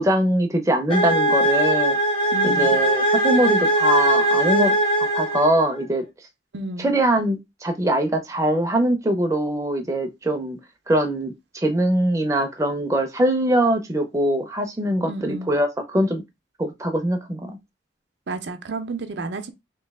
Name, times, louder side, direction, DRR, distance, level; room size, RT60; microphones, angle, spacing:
voice 1, 0.0-2.0 2.4-4.7 5.1-6.0 6.8-10.6 10.9-16.2 16.6-17.6, right 1 dB, 15° right, 0.5 m, -22 dB
sound 1, 0.9-5.8, right 1 dB, 30° left, 0.9 m, -20 dB
voice 2, 2.3-2.8 6.5-6.9 15.0-15.5 18.3-19.5, right 2 dB, 70° right, 0.6 m, -31 dB
3.1 x 2.7 x 3.5 m
head